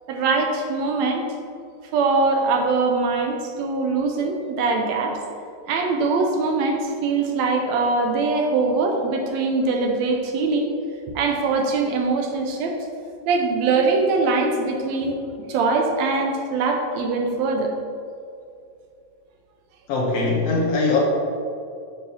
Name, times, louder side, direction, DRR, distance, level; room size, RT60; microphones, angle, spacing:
voice 1, 0.1-1.2 1.9-5.2 5.7-10.7 11.2-12.8 13.3-15.2 15.5-17.7, right 3 dB, 75° right, 2 dB, 1.9 m, -22 dB
voice 2, 19.9-21.0, left 3 dB, 65° left, -2 dB, 1.7 m, -21 dB
8.7 x 6.8 x 2.8 m, 2.4 s
omnidirectional pair, 3.3 m